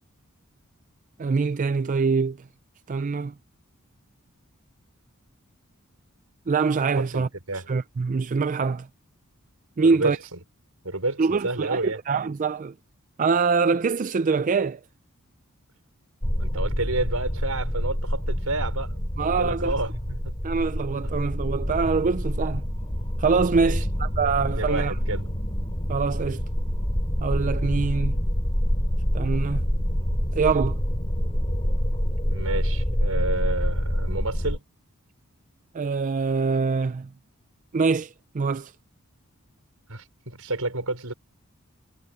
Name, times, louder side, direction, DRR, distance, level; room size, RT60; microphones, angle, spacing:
voice 1, 1.2-2.4 2.9-3.3 6.5-7.3 7.5-8.9 9.8-10.2 11.2-12.7 13.2-14.8 19.2-19.7 20.4-22.6 23.2-24.9 25.9-26.4 27.2-28.2 29.1-29.6 30.3-30.8 35.7-37.1 37.7-38.7, right 4 dB, 35° right, 0.4 m, -24 dB
voice 2, 7.1-7.6 9.9-10.4 10.8-12.0 16.4-20.4 23.6-23.7 24.5-25.3 32.2-34.6 39.9-41.1, right 2 dB, 75° right, 5.6 m, -30 dB
sound 1, 16.2-34.6, equal, 25° left, 3.3 m, -26 dB
head